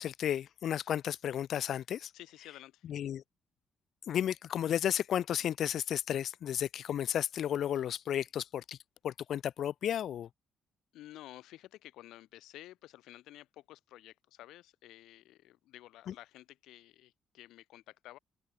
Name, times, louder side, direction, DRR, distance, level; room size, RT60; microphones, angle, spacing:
voice 1, 0.0-2.1 2.9-3.2 4.1-8.8 9.0-10.3 16.1-16.2, left 10 dB, 65° left, 0.6 m, -33 dB
voice 2, 2.1-2.9 10.9-18.2, left 15 dB, 90° left, 4.2 m, -52 dB
cardioid pair, 90°, 0 cm